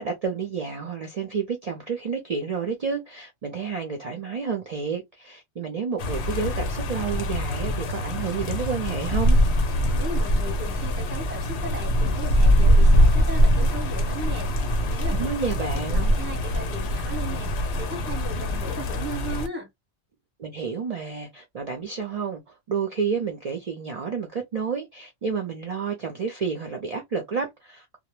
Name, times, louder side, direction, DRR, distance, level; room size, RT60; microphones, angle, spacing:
voice 1, 0.0-9.4 15.1-16.1 20.4-28.0, right 6 dB, 50° right, 0.5 m, -30 dB
sound 1, 6.0-19.5, equal, 85° left, 0.9 m, -23 dB
voice 2, 9.9-19.7, right 1 dB, 10° right, 0.8 m, -37 dB
2.1 x 2.0 x 3.0 m
omnidirectional pair, 1.1 m